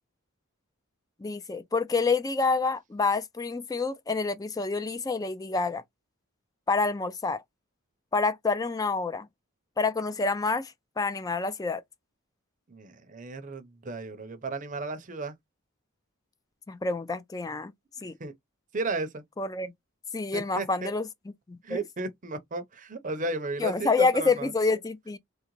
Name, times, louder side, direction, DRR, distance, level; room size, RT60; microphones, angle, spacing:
voice 1, 1.2-5.8 6.7-7.4 8.1-9.3 9.8-11.8 16.7-17.7 18.0-18.2 19.4-19.7 20.1-21.1 21.5-21.8 23.6-25.2, left 4 dB, 15° left, 0.3 m, -28 dB
voice 2, 12.7-15.3 18.2-18.3 18.7-19.2 20.3-20.9 21.6-24.5, right 3 dB, 40° right, 0.6 m, -34 dB
3.7 x 2.1 x 3.0 m
head